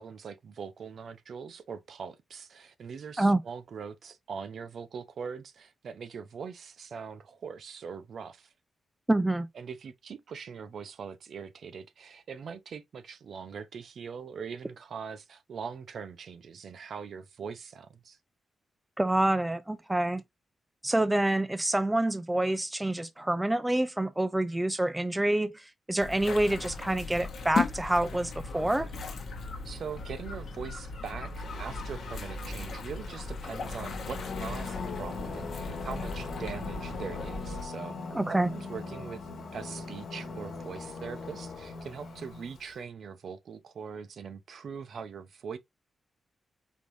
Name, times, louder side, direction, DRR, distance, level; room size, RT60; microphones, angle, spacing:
voice 1, 0.0-8.5 9.5-18.2 29.6-38.0 38.3-45.6, right 6 dB, 60° right, 0.6 m, -42 dB
voice 2, 9.1-9.5 19.0-20.2 20.8-28.9 38.1-38.5, right 1 dB, 10° right, 0.3 m, -27 dB
sound 1, 26.0-37.6, left 4 dB, 60° left, 1.1 m, -37 dB
Singing, 31.4-42.7, left 4 dB, 85° left, 1.2 m, -41 dB
5.2 x 2.6 x 3.1 m
wide cardioid pair, 150°, 0 cm